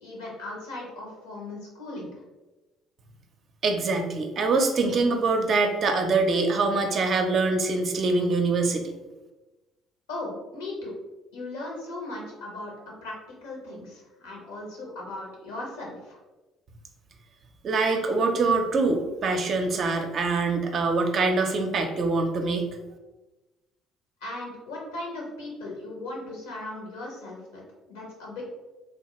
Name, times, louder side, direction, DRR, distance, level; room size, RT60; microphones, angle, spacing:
voice 1, 0.0-2.1 10.1-10.9 11.3-12.7 13.0-13.1 13.4-16.2 24.2-27.6 27.9-28.4, left 2 dB, 75° left, -2 dB, 0.9 m, -37 dB
voice 2, 3.6-8.9 17.6-22.7, right 3 dB, 50° right, 4 dB, 0.4 m, -24 dB
3.3 x 2.3 x 2.9 m, 1.1 s
figure-of-eight pair, 50°, 0 cm